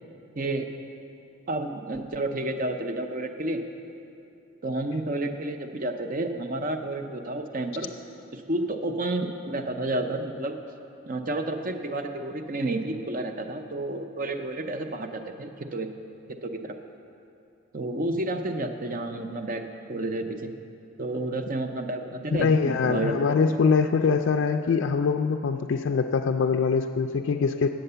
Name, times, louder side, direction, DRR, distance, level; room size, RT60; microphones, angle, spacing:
voice 1, 0.4-0.7 1.5-3.6 4.6-7.9 8.3-10.6 11.1-15.9 16.4-16.7 17.7-19.6 19.9-20.5 21.0-22.5 22.8-23.4, right 2 dB, 40° right, 6 dB, 0.6 m, -30 dB
voice 2, 22.3-27.7, left 5 dB, 60° left, 4 dB, 0.3 m, -23 dB
8.8 x 7.7 x 6.7 m, 2.6 s
head